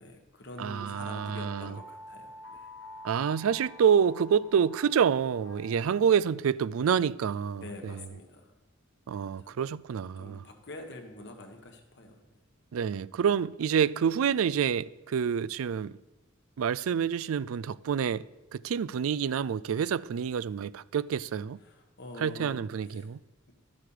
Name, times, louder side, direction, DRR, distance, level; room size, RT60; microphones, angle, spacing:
voice 1, 0.0-2.7 7.5-8.5 9.4-9.6 10.2-12.4 21.6-22.6 23.0-23.1, left 1 dB, 55° left, 1.5 m, -45 dB
voice 2, 0.6-1.8 3.0-8.1 9.1-10.4 12.7-16.0 16.6-18.2 18.5-21.6 22.2-23.2, right 7 dB, 90° right, 0.4 m, -28 dB
sound 1, 0.7-6.2, left 1 dB, 80° left, 1.2 m, -48 dB
12.5 x 8.0 x 4.9 m
head